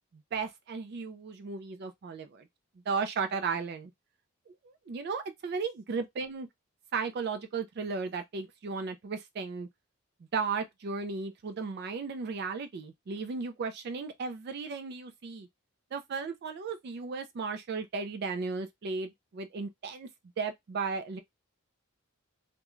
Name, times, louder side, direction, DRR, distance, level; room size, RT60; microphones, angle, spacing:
voice 1, 0.3-2.5 2.9-3.9 4.5-6.5 6.9-9.7 10.3-15.5 15.9-20.1 20.4-21.2, right 5 dB, 50° right, 0.3 m, -35 dB
2.3 x 2.1 x 3.0 m
head